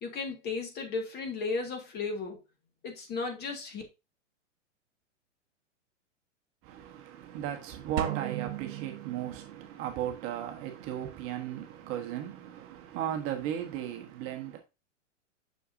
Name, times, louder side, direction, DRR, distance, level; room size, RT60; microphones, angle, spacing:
voice 1, 0.0-2.4 2.8-3.8, left 4 dB, 25° left, 1.8 m, -35 dB
voice 2, 6.6-14.6, right 11 dB, 35° right, 1.3 m, -36 dB
sound 1, 8.0-9.8, right 10 dB, 75° right, 1.3 m, -36 dB
6.8 x 6.4 x 2.7 m
hypercardioid pair, 130°, 38 cm